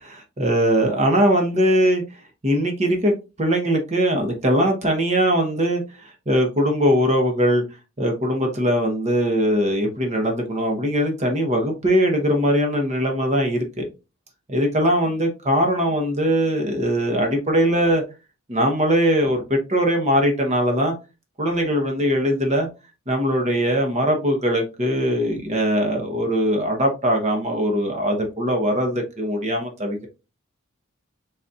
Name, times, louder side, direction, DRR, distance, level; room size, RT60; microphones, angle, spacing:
voice 1, 0.0-2.0 2.4-3.1 3.4-5.8 6.3-7.6 8.0-13.8 14.5-18.0 18.5-20.9 21.4-22.7 23.1-30.1, equal, 35° right, 0.9 m, -21 dB
4.0 x 4.0 x 2.3 m
head